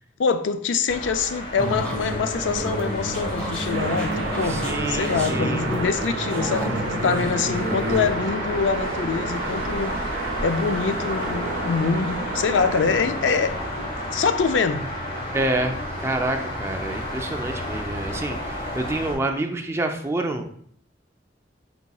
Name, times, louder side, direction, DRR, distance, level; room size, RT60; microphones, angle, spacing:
voice 1, 0.2-10.1 10.4-14.9, left 5 dB, 85° left, 0.4 m, -25 dB
sound 1, 0.9-19.2, left 1 dB, 30° left, 1.3 m, -32 dB
sound 2, 1.5-8.1, equal, 5° left, 1.0 m, -29 dB
sound 3, 3.7-13.0, right 4 dB, 80° right, 0.5 m, -32 dB
voice 2, 4.5-5.7 15.3-20.6, right 2 dB, 15° right, 0.4 m, -28 dB
4.5 x 4.1 x 2.3 m
head